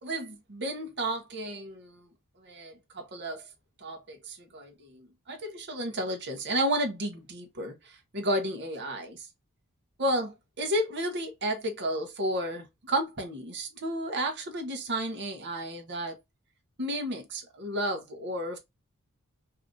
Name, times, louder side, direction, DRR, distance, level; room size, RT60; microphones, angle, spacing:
voice 1, 0.0-2.0 2.4-3.4 3.8-7.8 8.1-9.3 10.0-16.2 16.8-18.6, right 1 dB, 55° right, 0.9 m, -32 dB
2.7 x 2.5 x 3.6 m
head